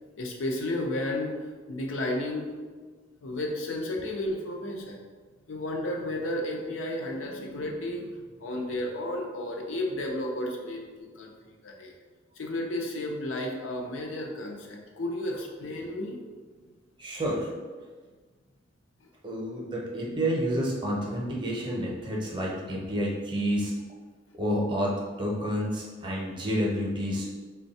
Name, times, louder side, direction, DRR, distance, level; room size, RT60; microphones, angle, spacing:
voice 1, 0.2-1.4 1.7-2.5 3.2-5.0 5.5-11.9 12.4-16.2 19.0-19.1, left 1 dB, 85° left, 1 dB, 0.6 m, -33 dB
voice 2, 17.0-17.5 19.2-23.7 24.3-27.5, equal, 25° right, -3 dB, 0.6 m, -29 dB
3.4 x 2.2 x 4.0 m, 1.5 s
head